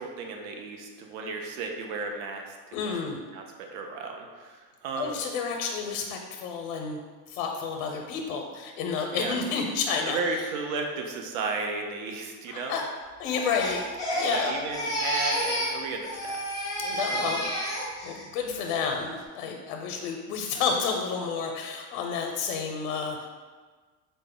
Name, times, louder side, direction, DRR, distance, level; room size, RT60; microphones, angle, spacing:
voice 1, 0.0-2.6 3.3-5.1 9.1-9.4 10.0-12.7 14.3-16.4 17.1-17.4, right 4 dB, 70° right, 2 dB, 0.6 m, -34 dB
voice 2, 2.7-3.2 5.0-7.0 7.3-10.2 12.5-12.8 13.2-13.8 14.1-14.6 16.8-17.4 18.0-23.3, left 5 dB, 90° left, 2 dB, 0.6 m, -30 dB
Crying sobbing, 13.2-18.2 18.6-19.0, equal, 10° left, 0.4 m, -30 dB
4.0 x 2.1 x 3.7 m, 1.4 s
cardioid pair, 175°, 41 cm